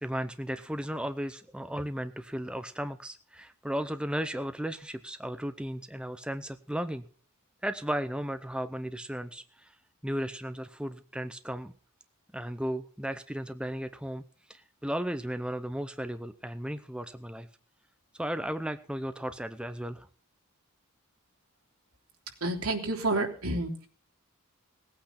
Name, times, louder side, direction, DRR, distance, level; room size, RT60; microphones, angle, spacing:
voice 1, 0.0-7.0 7.6-9.7 10.0-11.7 12.3-14.2 14.5-17.5 18.2-20.1, equal, 5° right, 9 dB, 0.7 m, -35 dB
voice 2, 22.4-23.9, right 2 dB, 75° right, 2 dB, 3.3 m, -29 dB
18.5 x 8.8 x 5.9 m, 0.42 s
head